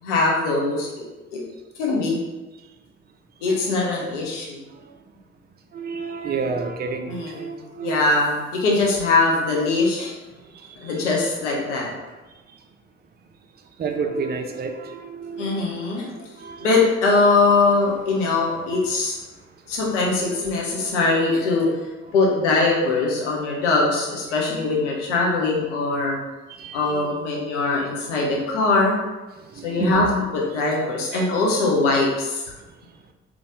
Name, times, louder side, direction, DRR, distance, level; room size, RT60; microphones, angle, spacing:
voice 1, 0.0-0.9 1.3-1.4 1.8-2.2 3.4-4.6 7.1-10.2 10.8-11.9 15.4-16.1 16.6-19.2 19.7-21.7 22.1-26.2 26.7-29.0 29.6-30.1 30.3-32.4, left 3 dB, 75° left, -2 dB, 1.0 m, -21 dB
voice 2, 5.7-8.0 10.5-10.9 13.8-15.7 16.2-16.8 26.5-27.1 29.4-30.1 31.1-31.3, right 4 dB, 25° right, 5 dB, 0.6 m, -30 dB
3.9 x 3.1 x 3.6 m, 1.1 s
figure-of-eight pair, 50°, 36 cm